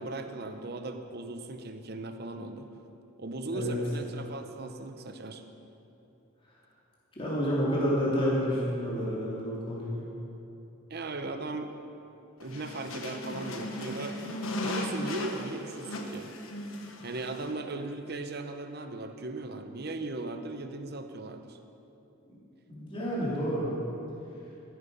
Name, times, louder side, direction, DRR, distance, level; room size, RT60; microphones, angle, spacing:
voice 1, 0.0-2.7 3.2-5.4 10.9-11.8 12.4-14.2 14.6-16.3 17.0-21.6, right 2 dB, 50° right, 7 dB, 0.8 m, -38 dB
voice 2, 7.1-10.1 22.7-23.7, equal, 25° left, -7 dB, 2.9 m, -29 dB
sound 1, 12.4-17.5, left 1 dB, 75° left, 1.3 m, -37 dB
13.5 x 11.0 x 5.4 m, 3.0 s
head